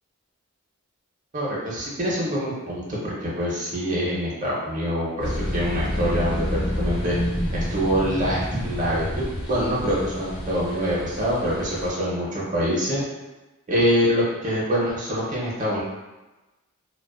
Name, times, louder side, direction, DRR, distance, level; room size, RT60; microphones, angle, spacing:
voice 1, 1.3-7.2 7.5-13.0 13.7-15.8, equal, 35° right, -7 dB, 0.6 m, -25 dB
sound 1, 5.2-11.9, equal, 55° left, 0.6 m, -29 dB
2.4 x 2.3 x 2.3 m, 1.1 s
head